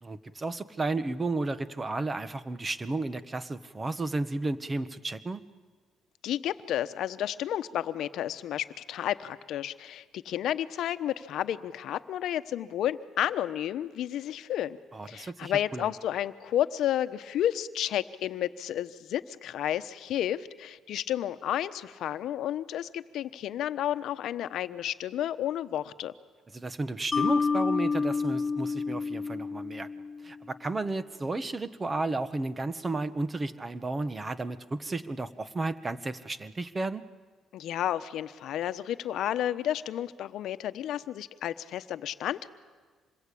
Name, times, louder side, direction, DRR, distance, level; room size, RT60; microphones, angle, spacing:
voice 1, 0.0-5.4 14.9-15.9 26.5-29.9 30.2-37.0, right 2 dB, 25° right, 13 dB, 1.2 m, -33 dB
voice 2, 6.2-14.8 15.1-26.1 37.5-42.5, left 11 dB, 70° left, 12 dB, 1.0 m, -31 dB
Mallet percussion, 27.1-30.4, left 4 dB, 35° left, 1.4 m, -29 dB
26.5 x 21.5 x 8.6 m, 1.5 s
cardioid pair, 95°, 0 cm